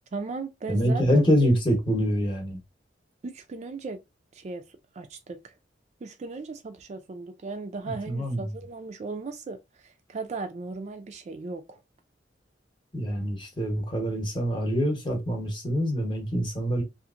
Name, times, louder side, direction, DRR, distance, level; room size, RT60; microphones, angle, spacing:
voice 1, 0.1-1.5 3.2-4.0 4.3-4.6 4.9-5.5 6.0-11.8, right 3 dB, 40° right, 0.3 m, -37 dB
voice 2, 0.7-2.6 8.1-8.5 12.9-16.8, equal, 25° left, 0.9 m, -25 dB
2.8 x 2.5 x 2.4 m
head